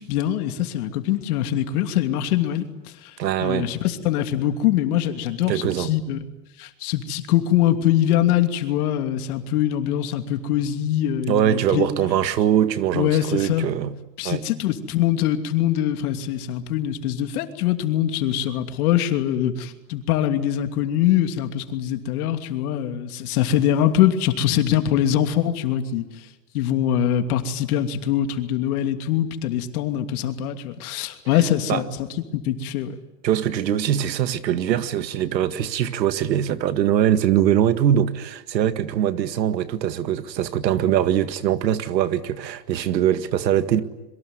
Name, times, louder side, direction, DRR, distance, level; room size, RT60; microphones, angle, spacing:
voice 1, 0.0-2.6 3.0-3.1 3.4-6.2 6.6-11.9 12.9-13.7 14.2-26.0 26.5-32.1 32.3-33.0, left 11 dB, 60° left, 2.9 m, -23 dB
voice 2, 3.2-3.7 5.5-5.9 11.3-14.0 14.2-14.4 31.7-31.8 33.2-43.8, right 10 dB, 85° right, 2.0 m, -22 dB
26.5 x 23.5 x 9.6 m
supercardioid pair, 130°, 49 cm